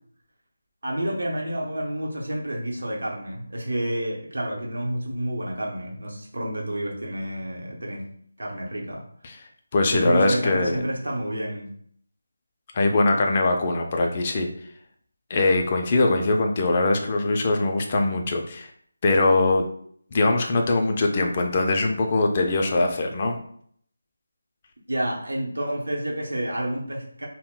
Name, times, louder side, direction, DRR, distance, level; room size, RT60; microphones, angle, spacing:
voice 1, 0.8-8.0 8.4-9.0 9.9-11.7 24.9-27.3, right 1 dB, 85° right, -1 dB, 0.8 m, -29 dB
voice 2, 9.7-10.8 12.7-14.5 15.3-18.7 19.0-19.7 20.1-23.4, left 2 dB, 30° left, 2 dB, 0.3 m, -22 dB
2.2 x 2.0 x 3.7 m, 0.62 s
figure-of-eight pair, 170°, 0 cm